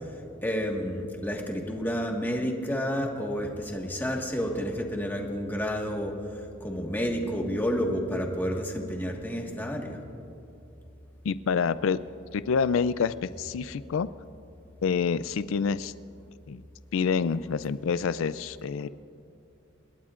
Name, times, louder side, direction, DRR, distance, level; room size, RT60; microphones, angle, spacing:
voice 1, 0.4-6.1 6.6-10.0, equal, 10° left, 1 dB, 1.6 m, -30 dB
voice 2, 11.2-12.0 12.3-14.1 14.8-15.9 16.5-16.6 16.9-18.9, left 6 dB, 85° left, 15 dB, 0.4 m, -27 dB
26.5 x 20.5 x 2.5 m, 2.7 s
head